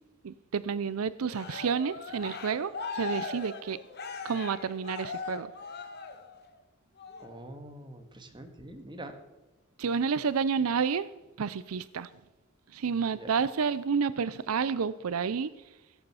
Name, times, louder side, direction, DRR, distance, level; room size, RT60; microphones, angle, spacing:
voice 1, 0.2-3.8 4.2-5.5 9.8-11.1 11.4-12.1 12.7-15.5, right 6 dB, 90° right, 0.5 m, -30 dB
Cheering, 1.3-6.5 7.0-7.4, left 4 dB, 50° left, 1.5 m, -39 dB
voice 2, 7.2-9.2 13.1-13.3, right 1 dB, 20° right, 1.7 m, -45 dB
16.0 x 8.0 x 7.0 m
head